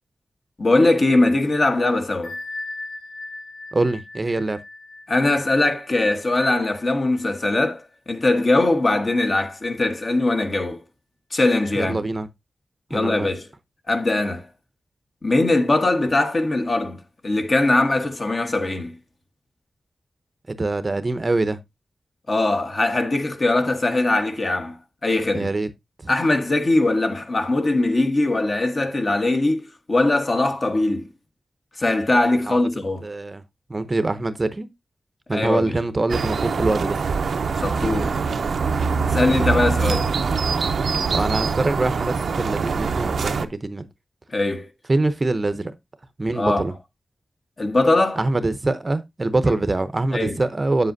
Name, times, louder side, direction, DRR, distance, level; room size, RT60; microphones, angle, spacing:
voice 1, 0.6-2.4 5.1-10.8 11.3-12.0 12.9-13.4 13.9-14.5 15.2-19.0 22.3-25.5 26.1-31.1 31.8-33.1 35.3-35.7 37.6-38.1 39.0-40.1 44.3-44.7 46.3-46.6 47.6-48.2 50.1-50.4, left 2 dB, 40° left, 1.3 m, -21 dB
Bell, 2.2-7.7, left 2 dB, 80° left, 3.9 m, -38 dB
voice 2, 3.7-4.6 11.8-12.3 12.9-13.3 20.5-21.6 25.3-25.7 26.0-26.1 32.5-32.6 33.0-33.4 33.7-34.7 35.3-37.0 39.3-39.5 41.1-43.9 44.9-45.7 46.2-46.7 48.2-50.9, right 2 dB, 30° right, 0.7 m, -24 dB
sound 1, 36.1-43.5, right 5 dB, 80° right, 0.6 m, -23 dB
8.3 x 7.4 x 2.6 m
wide cardioid pair, 120°, 0 cm